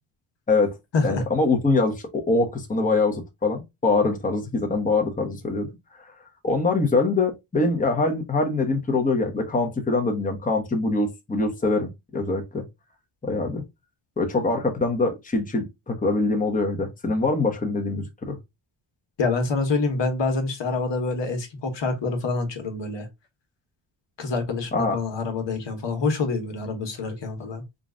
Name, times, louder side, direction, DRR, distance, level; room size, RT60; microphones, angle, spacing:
voice 1, 1.0-5.7 6.0-6.1 6.4-12.6 13.2-13.6 14.2-18.4 24.7-25.0, left 3 dB, 15° left, 1.0 m, -24 dB
voice 2, 19.2-23.1 24.2-27.6, left 3 dB, 60° left, 1.4 m, -26 dB
3.9 x 2.4 x 3.7 m
cardioid pair, 95°, 48 cm